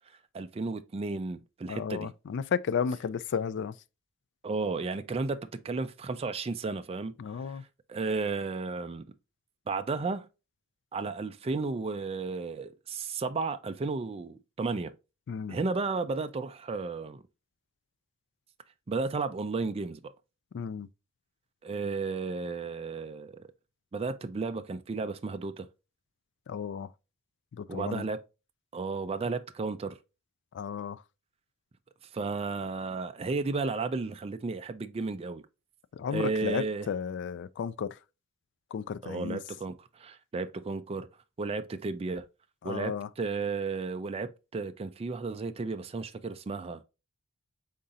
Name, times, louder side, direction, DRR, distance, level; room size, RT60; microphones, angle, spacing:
voice 1, 0.3-2.1 4.4-7.1 7.5-7.6 7.9-9.0 9.7-10.3 10.9-14.9 15.5-17.2 18.9-20.1 21.6-23.5 23.9-25.7 27.7-28.2 28.7-30.0 32.1-35.4 36.1-36.9 39.0-41.1 41.4-42.3 42.6-46.8, right 3 dB, 25° right, 0.3 m, -33 dB
voice 2, 1.7-3.7 7.2-7.6 15.3-15.6 20.5-20.9 26.5-26.9 27.5-28.0 30.5-31.0 35.9-38.0 38.7-39.4 42.6-43.1, left 7 dB, 55° left, 0.3 m, -33 dB
5.5 x 3.8 x 2.4 m
head